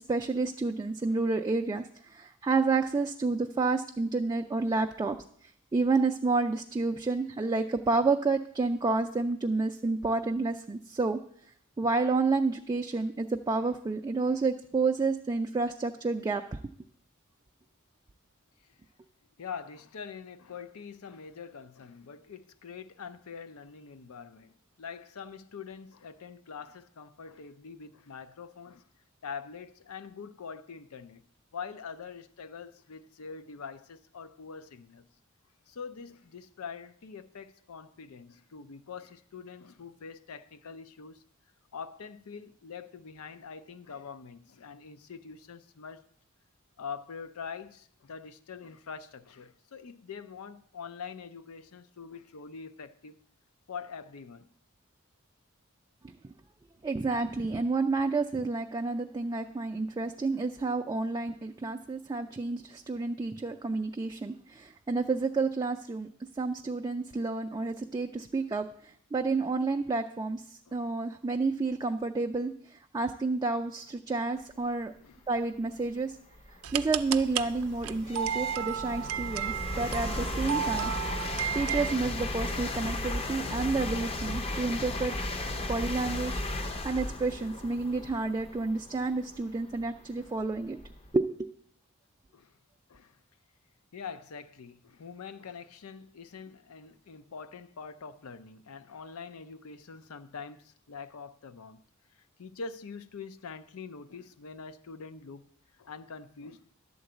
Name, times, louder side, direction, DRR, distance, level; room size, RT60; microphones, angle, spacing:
voice 1, 0.0-5.2 5.7-11.2 11.8-16.4 56.8-66.1 66.4-68.7 69.1-74.9 75.3-76.1 76.7-80.9 81.5-85.1 85.7-86.4 86.8-90.8 91.1-91.5, right 3 dB, 20° right, 0.3 m, -30 dB
voice 2, 19.4-28.9 29.2-31.2 31.5-35.1 35.7-41.2 41.7-46.0 46.8-53.2 53.7-54.5 70.7-70.9 74.5-74.7 75.0-75.3 88.0-88.1 90.2-90.3 92.3-92.6 92.9-93.2 93.9-101.8 102.2-105.5 105.8-106.6, left 5 dB, 90° left, 0.5 m, -44 dB
sound 1, 75.7-75.8 76.4-91.1, left 2 dB, 25° left, 0.6 m, -36 dB
sound 2, 76.6-82.0, right 9 dB, 85° right, 0.5 m, -33 dB
11.0 x 3.9 x 7.8 m
head